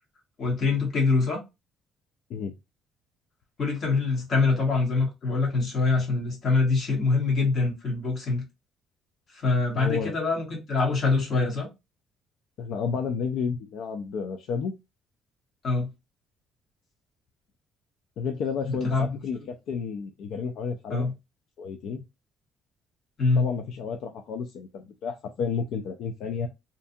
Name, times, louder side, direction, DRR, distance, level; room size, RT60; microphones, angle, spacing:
voice 1, 0.4-1.4 3.6-8.4 9.3-11.7 15.6-15.9 18.6-19.1 20.9-21.1 23.2-23.5, left 3 dB, 35° left, 1.0 m, -24 dB
voice 2, 9.8-10.1 12.6-14.7 18.2-21.1 21.6-22.0 23.4-26.5, left 6 dB, 60° left, 0.3 m, -31 dB
2.6 x 2.3 x 2.5 m
cardioid pair, 170°, 0 cm